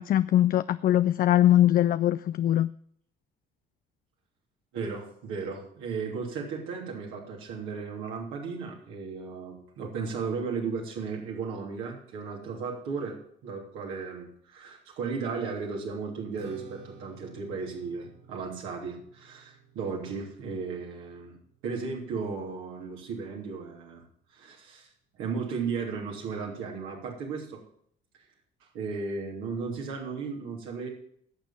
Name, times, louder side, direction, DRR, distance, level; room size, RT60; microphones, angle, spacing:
voice 1, 0.0-2.7, left 12 dB, 45° left, 15 dB, 0.4 m, -22 dB
voice 2, 4.7-21.4 21.6-24.0 24.3-24.9 25.1-27.6 28.7-30.9, right 5 dB, 75° right, 0 dB, 3.1 m, -35 dB
Strum, 16.4-22.7, right 4 dB, 50° right, 3.3 m, -53 dB
11.5 x 7.2 x 7.4 m, 0.65 s
hypercardioid pair, 55°, 21 cm